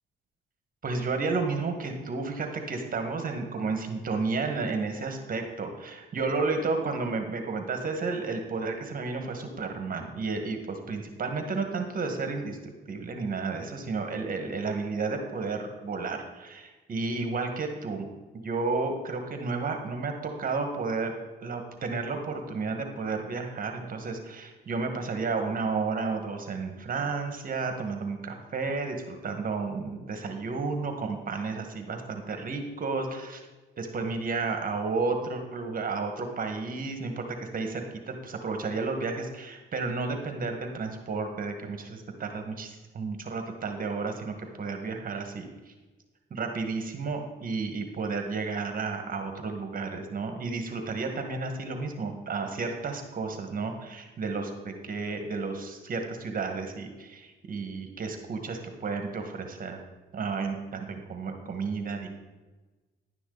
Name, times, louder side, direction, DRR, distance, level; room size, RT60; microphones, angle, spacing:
voice 1, 0.8-21.1 21.4-33.4 33.8-37.2 37.5-45.7 46.3-59.8 60.1-62.1, right 4 dB, 45° right, 5 dB, 1.7 m, -32 dB
11.0 x 10.0 x 4.0 m, 1.2 s
cardioid pair, 90°, 20 cm